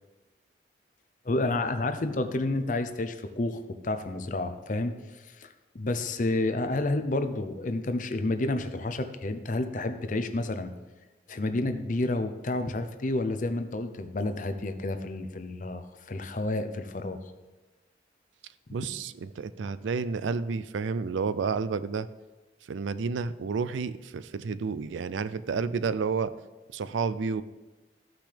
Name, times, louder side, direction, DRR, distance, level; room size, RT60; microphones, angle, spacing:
voice 1, 1.2-4.9 5.3-5.5 5.7-10.7 11.3-15.8 16.1-17.2, left 2 dB, 45° left, 9 dB, 0.6 m, -30 dB
voice 2, 18.7-22.1 22.7-26.3 26.7-27.4, right 5 dB, 85° right, 15 dB, 0.4 m, -30 dB
14.0 x 6.0 x 3.4 m, 1.2 s
head